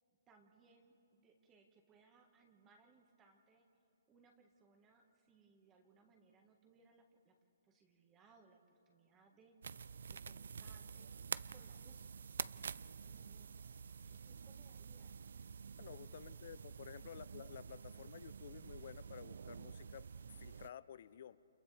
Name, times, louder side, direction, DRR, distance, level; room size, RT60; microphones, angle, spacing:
voice 1, 0.3-3.6 4.1-7.4 7.6-11.1 11.5-13.6 14.1-15.2 16.1-16.6, right 4 dB, 15° right, 3 dB, 1.6 m, -68 dB
sound 1, 9.6-20.7, right 6 dB, 70° right, 0.4 m, -49 dB
voice 2, 15.8-20.1 20.4-21.4, left 9 dB, 50° left, 17 dB, 0.6 m, -53 dB
29.5 x 27.0 x 3.4 m, 2.8 s
hypercardioid pair, 155°, 0 cm